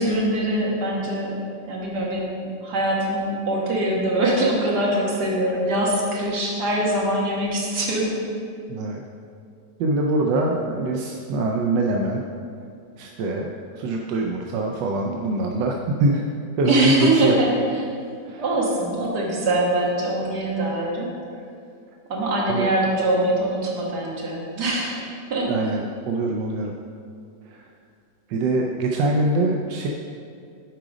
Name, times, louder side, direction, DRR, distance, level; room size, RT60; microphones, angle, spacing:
voice 1, 0.0-1.3 1.7-8.2 16.7-17.5 18.4-21.1 22.1-25.5, right 1 dB, 65° right, -3 dB, 2.0 m, -23 dB
voice 2, 8.7-9.0 9.8-12.2 13.0-15.7 16.0-16.2 16.6-17.4 18.2-18.4 22.5-22.7 25.5-26.7 27.5-27.7 28.3-29.9, right 2 dB, 90° right, 1 dB, 1.3 m, -24 dB
7.6 x 5.0 x 5.0 m, 2.4 s
omnidirectional pair, 1.9 m